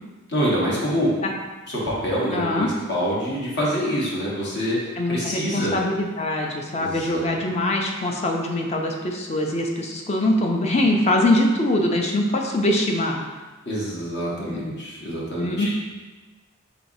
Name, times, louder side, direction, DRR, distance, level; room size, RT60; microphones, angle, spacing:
voice 1, 0.3-1.1 1.7-4.8 5.1-5.7 6.8-7.2 13.7-15.7, equal, 55° left, -6 dB, 1.2 m, -25 dB
voice 2, 2.3-2.7 5.0-13.2 14.5-14.6 15.4-15.7, left 1 dB, 30° left, 1 dB, 0.5 m, -23 dB
4.5 x 4.0 x 2.7 m, 1.3 s
head